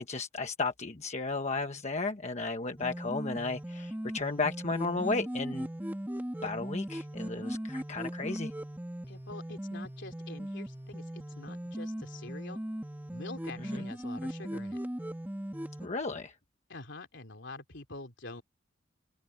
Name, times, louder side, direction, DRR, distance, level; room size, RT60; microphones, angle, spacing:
voice 1, 0.0-5.7 6.4-8.5 13.7-13.8 15.8-16.3, left 3 dB, 35° left, 1.2 m, -34 dB
sound 1, 2.8-15.9, equal, 10° right, 1.6 m, -38 dB
voice 2, 9.1-12.6 13.1-14.8 16.7-18.4, left 2 dB, 65° left, 3.6 m, -46 dB
open air
head